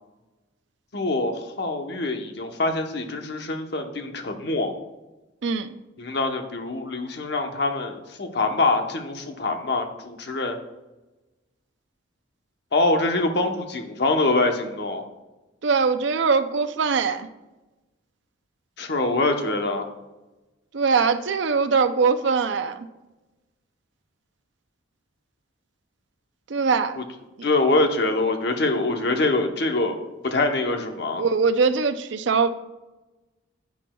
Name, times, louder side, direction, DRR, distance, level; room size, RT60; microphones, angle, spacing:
voice 1, 0.9-4.7 6.0-10.6 12.7-15.0 18.8-19.9 27.0-27.1 27.4-29.9 30.3-31.3, left 2 dB, 55° left, 5 dB, 0.9 m, -24 dB
voice 2, 15.6-17.3 20.7-22.9 26.5-27.0 31.2-32.5, right 5 dB, 70° right, 10 dB, 0.5 m, -22 dB
10.0 x 8.4 x 2.3 m, 1.1 s
head